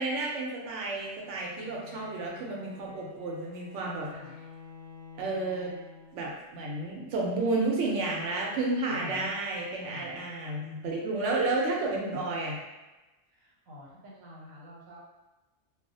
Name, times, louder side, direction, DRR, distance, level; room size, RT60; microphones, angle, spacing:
voice 1, 0.0-4.1 5.2-5.7 6.1-12.6, right 2 dB, 70° right, -2 dB, 0.9 m, -31 dB
Bowed string instrument, 1.2-6.5, left 5 dB, 60° left, 0.7 m, -50 dB
voice 2, 8.9-9.3 9.8-10.2 13.3-15.0, left 2 dB, 90° right, -4 dB, 1.1 m, -46 dB
2.3 x 2.0 x 2.6 m, 1.1 s
omnidirectional pair, 1.4 m